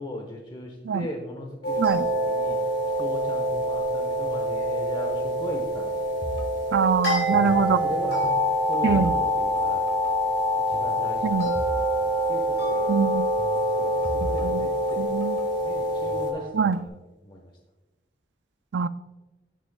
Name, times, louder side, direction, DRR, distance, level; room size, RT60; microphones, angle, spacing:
voice 1, 0.0-2.6 3.0-6.0 7.3-8.2 8.7-9.8 10.7-11.4 11.6-13.1 13.4-15.1 15.6-16.9 17.2-17.5, left 1 dB, 25° left, 2 dB, 1.0 m, -38 dB
sound 1, 1.6-16.3, equal, 70° left, 3.1 m, -25 dB
sound 2, 6.2-7.8 8.0-9.6 9.9-10.1 10.7-11.8 12.1-12.2 13.4-15.5 16.0-16.9, equal, 45° right, 1.5 m, -37 dB
voice 2, 6.7-7.8 8.8-9.1 11.2-11.5 12.9-13.3 14.4-14.7 15.0-15.4 16.5-16.8 18.7-18.9, right 6 dB, 85° right, 13 dB, 0.4 m, -23 dB
11.0 x 9.4 x 2.2 m, 1.1 s
head